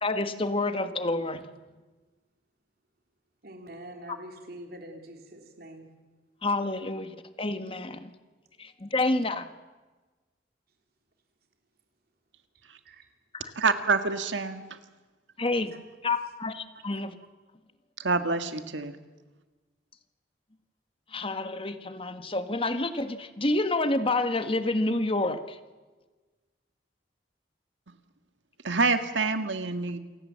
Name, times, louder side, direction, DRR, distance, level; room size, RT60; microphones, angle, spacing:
voice 1, 0.0-1.4 4.1-4.2 6.4-8.1 8.6-9.5 13.4-13.5 15.4-15.7 16.0-17.2 21.1-25.6, left 2 dB, 30° left, 10 dB, 1.4 m, -28 dB
voice 2, 3.4-5.9 12.8-13.0 13.6-13.7, right 1 dB, 55° right, 4 dB, 3.3 m, -44 dB
voice 3, 13.6-14.6 18.0-18.9 28.6-30.0, right 4 dB, 90° right, 9 dB, 1.7 m, -26 dB
28.0 x 16.5 x 7.6 m, 1.3 s
head